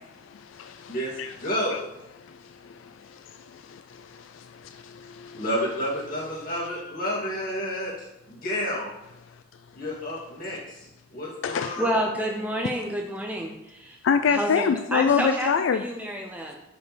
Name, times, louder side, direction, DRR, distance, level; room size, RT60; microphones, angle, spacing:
voice 1, 0.3-1.4 1.7-1.8 2.4-5.4 11.4-11.8 14.0-15.9, left 6 dB, 75° left, 9 dB, 0.3 m, -27 dB
voice 2, 1.4-1.8 5.3-7.9 8.3-8.9 9.7-10.9 11.1-12.0, equal, 45° left, -6 dB, 2.7 m, -30 dB
voice 3, 11.8-14.0 14.3-16.6, equal, 10° right, 0 dB, 0.6 m, -29 dB
5.5 x 5.3 x 6.1 m, 0.89 s
head